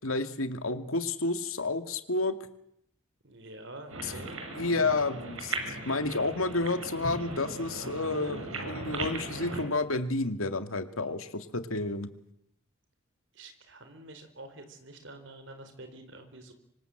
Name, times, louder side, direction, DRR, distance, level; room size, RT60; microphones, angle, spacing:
voice 1, 0.0-2.4 4.0-4.1 4.5-12.1, left 3 dB, 85° left, 9 dB, 2.2 m, -30 dB
voice 2, 3.2-4.4 13.3-16.5, right 2 dB, 60° right, 7 dB, 4.5 m, -47 dB
sound 1, 3.9-9.6, right 2 dB, 80° right, 7.0 m, -38 dB
26.0 x 25.0 x 8.0 m, 0.75 s
head